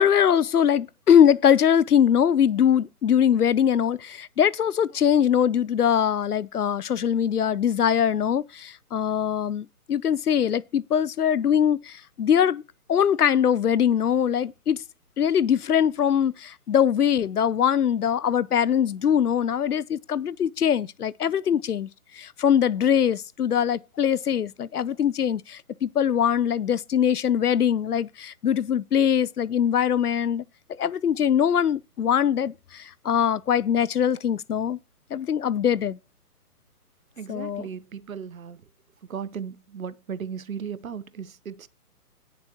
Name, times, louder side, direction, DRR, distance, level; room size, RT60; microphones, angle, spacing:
voice 1, 0.0-12.6 12.9-14.8 15.2-30.4 30.8-34.8 35.1-36.0 37.3-37.7, left 8 dB, 80° left, 0.7 m, -22 dB
voice 2, 37.2-38.6 39.1-41.7, right 7 dB, 65° right, 1.1 m, -36 dB
17.5 x 6.9 x 3.0 m
figure-of-eight pair, 140°, 45 cm